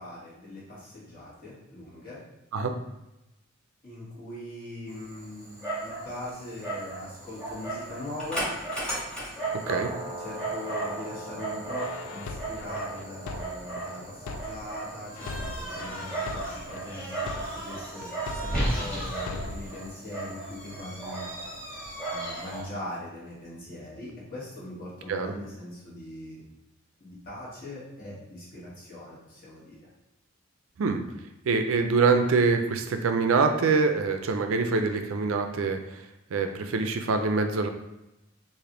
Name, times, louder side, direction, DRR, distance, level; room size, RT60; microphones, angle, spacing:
voice 1, 0.0-2.2 3.8-8.5 10.2-21.3 22.1-26.4 27.0-29.8, left 1 dB, 45° left, -7 dB, 1.5 m, -41 dB
Dog, 4.9-22.6, right 2 dB, 5° left, 1.5 m, -35 dB
sound 1, 11.8-14.8 15.2-18.8 19.2-19.8, left 4 dB, 80° left, 0.3 m, -40 dB
voice 2, 31.5-36.0 36.3-37.7, right 4 dB, 70° right, 6 dB, 0.4 m, -25 dB
3.3 x 2.5 x 3.7 m, 0.91 s
head